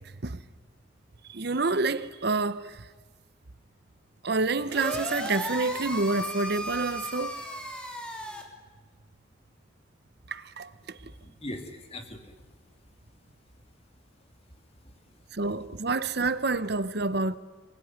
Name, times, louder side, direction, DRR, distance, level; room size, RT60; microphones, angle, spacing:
voice 1, 1.3-2.9 4.2-7.4 10.3-11.0 15.3-17.4, right 3 dB, 55° right, 0.9 m, -28 dB
sound 1, 4.7-8.4, equal, 5° left, 3.3 m, -35 dB
voice 2, 11.0-12.8 13.9-15.4, left 1 dB, 30° left, 2.9 m, -44 dB
26.5 x 20.0 x 9.6 m
head